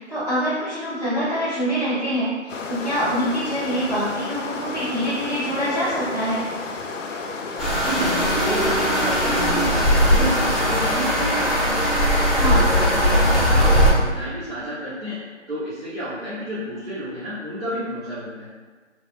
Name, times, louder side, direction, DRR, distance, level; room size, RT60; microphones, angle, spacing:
voice 1, 0.0-6.4 12.4-12.6, equal, 35° right, -13 dB, 0.7 m, -25 dB
sound 1, 2.5-10.9, left 4 dB, 80° left, 0.5 m, -32 dB
sound 2, 7.6-13.9, equal, ahead, 0.3 m, -19 dB
voice 2, 7.8-12.0 12.3-15.2 15.5-18.5, equal, 80° right, -13 dB, 1.4 m, -31 dB
3.3 x 2.4 x 2.2 m, 1.4 s
figure-of-eight pair, 175°, 37 cm